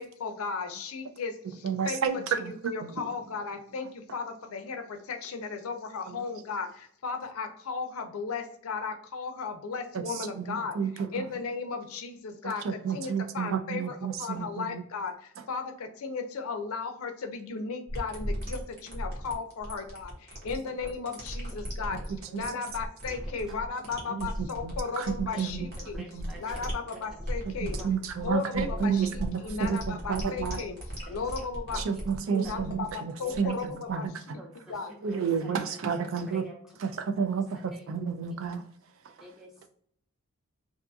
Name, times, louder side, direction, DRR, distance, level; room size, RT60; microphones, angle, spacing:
voice 1, 0.0-2.0 2.4-10.8 11.1-22.0 22.3-26.0 26.4-27.8 28.2-30.8 31.1-31.8 32.3-34.1 34.7-34.9, left 5 dB, 80° left, 0.5 m, -35 dB
voice 2, 1.6-3.1 6.1-6.2 9.9-11.2 12.4-14.8 21.9-22.0 22.3-22.4 24.1-25.7 26.1-26.6 27.6-30.6 31.8-34.4 35.0-36.5 36.8-38.7 39.0-39.1, right 6 dB, 65° right, 0.3 m, -31 dB
sound 1, 17.9-34.1, equal, 50° right, 1.0 m, -37 dB
voice 3, 21.5-21.9 22.3-22.6 23.2-23.6 25.0-26.6 27.2-27.3 27.8-28.0 28.7-29.1 29.7-29.8 30.1-30.2 30.6-31.2 31.7-32.6 33.2-34.1 34.4-35.6 36.2-36.6 36.8-37.2 37.7-38.0 39.2-39.7, equal, ahead, 0.6 m, -50 dB
2.5 x 2.3 x 2.6 m
head